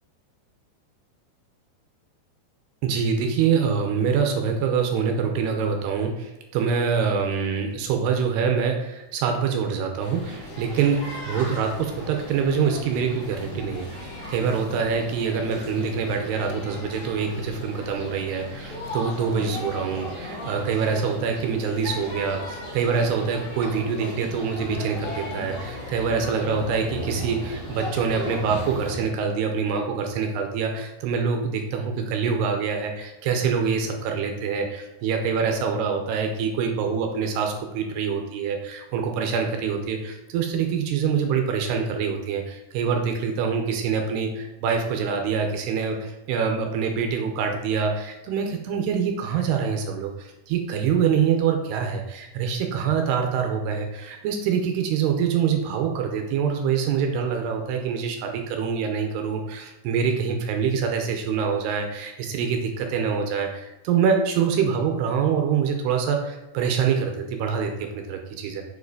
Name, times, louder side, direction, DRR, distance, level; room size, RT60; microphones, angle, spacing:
voice 1, 2.8-68.6, right 6 dB, 80° right, 4 dB, 2.7 m, -25 dB
sound 1, 10.0-29.0, left 1 dB, 55° left, 2.7 m, -36 dB
7.1 x 4.8 x 4.8 m, 1.1 s
omnidirectional pair, 5.0 m